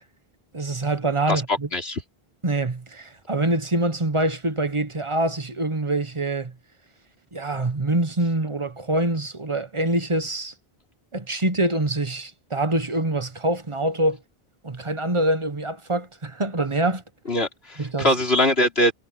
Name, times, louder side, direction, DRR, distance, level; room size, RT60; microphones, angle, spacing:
voice 1, 0.5-1.5 2.4-6.5 7.3-10.5 11.1-14.2 14.6-17.0 17.8-18.0, right 2 dB, 30° right, 1.2 m, -25 dB
voice 2, 1.3-2.0 17.3-18.9, left 1 dB, 80° left, 4.2 m, -22 dB
omnidirectional pair, 1.0 m